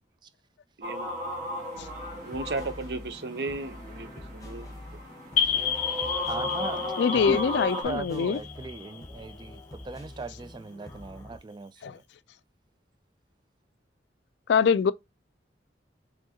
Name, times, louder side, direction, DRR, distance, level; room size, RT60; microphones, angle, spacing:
sound 1, 0.8-7.8, left 1 dB, 45° right, 1.7 m, -36 dB
voice 1, 0.8-1.1 2.2-4.8, right 3 dB, 60° right, 0.8 m, -35 dB
sound 2, 1.7-11.4, left 1 dB, 20° left, 0.9 m, -46 dB
sound 3, 5.4-9.8, left 8 dB, 45° left, 0.7 m, -31 dB
voice 2, 6.3-6.8 7.1-12.0, right 3 dB, 25° right, 0.3 m, -38 dB
voice 3, 7.0-8.4 11.8-12.0 14.5-14.9, left 6 dB, 70° left, 0.3 m, -23 dB
4.6 x 3.5 x 2.9 m
head